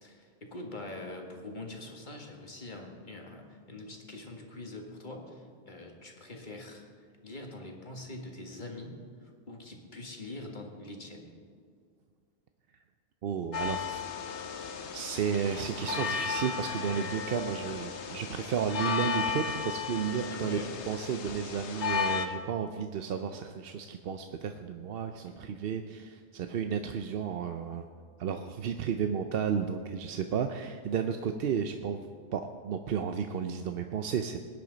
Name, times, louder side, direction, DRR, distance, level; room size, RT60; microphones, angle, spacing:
voice 1, 0.0-6.8 7.2-11.3 15.8-15.9 20.3-21.0 25.2-25.5, left 2 dB, 45° left, 1 dB, 1.8 m, -44 dB
voice 2, 13.2-14.0 14.5-20.6 20.9-27.8 28.2-34.4, right 7 dB, 65° right, 7 dB, 0.8 m, -33 dB
sound 1, 13.5-22.3, left 6 dB, 80° left, 1.2 m, -34 dB
20.0 x 10.5 x 3.9 m, 2.1 s
omnidirectional pair, 1.1 m